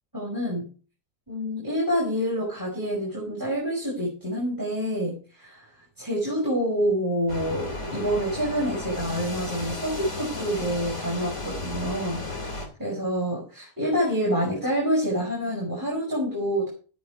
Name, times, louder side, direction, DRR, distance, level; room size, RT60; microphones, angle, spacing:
voice 1, 0.1-0.7 1.3-5.7 6.0-16.7, equal, 10° right, -4 dB, 5.2 m, -27 dB
sound 1, 7.3-12.7, left 2 dB, 50° left, 3.2 m, -34 dB
12.0 x 9.4 x 4.7 m, 0.38 s
omnidirectional pair, 1.6 m